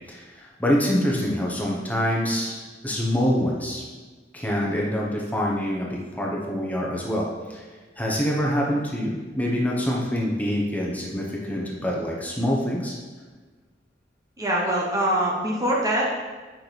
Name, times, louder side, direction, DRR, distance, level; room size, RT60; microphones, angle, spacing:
voice 1, 0.1-3.8 4.3-7.6 8.0-13.0, equal, 10° left, -3 dB, 1.2 m, -25 dB
voice 2, 14.4-16.1, right 1 dB, 20° right, -3 dB, 1.0 m, -23 dB
8.7 x 6.0 x 3.5 m, 1.3 s
head